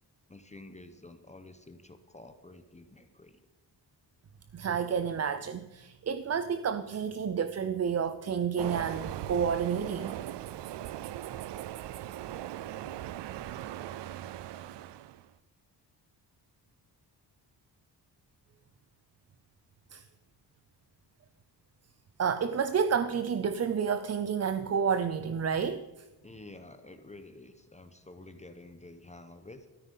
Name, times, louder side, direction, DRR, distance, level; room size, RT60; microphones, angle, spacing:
voice 1, 0.3-3.4 26.2-29.7, left 2 dB, 15° left, 8 dB, 1.0 m, -50 dB
voice 2, 4.5-10.1 19.9-20.0 22.2-25.9, right 7 dB, 40° right, 11 dB, 0.6 m, -30 dB
Train, 8.6-15.3, right 12 dB, 80° right, 0.6 m, -39 dB
13.5 x 13.5 x 5.5 m, 1.1 s
wide cardioid pair, 130°, 42 cm